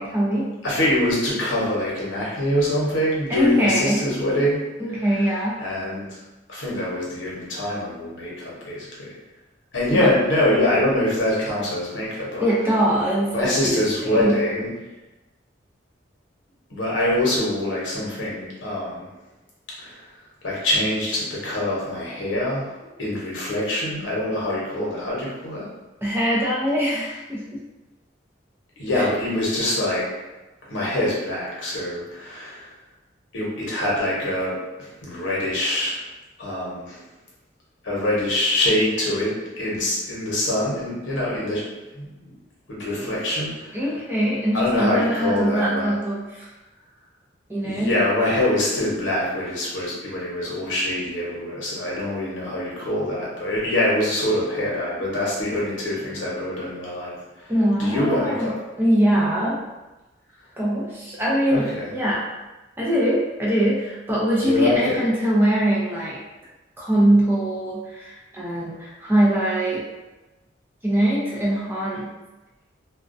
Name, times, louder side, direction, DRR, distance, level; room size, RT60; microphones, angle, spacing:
voice 1, 0.0-0.5 3.3-4.0 4.8-5.6 9.9-10.1 12.4-13.8 14.1-14.4 26.0-27.6 28.9-29.0 43.0-43.2 43.7-46.5 47.5-47.9 57.5-58.5 58.8-59.6 60.6-61.7 61.9-62.2 62.8-66.2 66.8-69.8 70.8-72.1, right 1 dB, 10° right, -6 dB, 0.4 m, -22 dB
voice 2, 0.6-4.6 4.9-5.3 5.6-6.2 6.5-9.1 9.7-12.5 13.3-14.7 16.7-19.1 19.8-20.0 20.4-22.7 23.0-25.7 28.8-30.1 30.7-32.7 33.3-36.0 36.4-37.0 37.8-41.6 41.9-42.1 42.7-43.8 44.5-45.9 47.6-57.5 57.8-58.5 61.5-61.9 64.4-65.0, left 1 dB, 85° left, -5 dB, 0.8 m, -24 dB
2.3 x 2.1 x 2.5 m, 1.1 s
head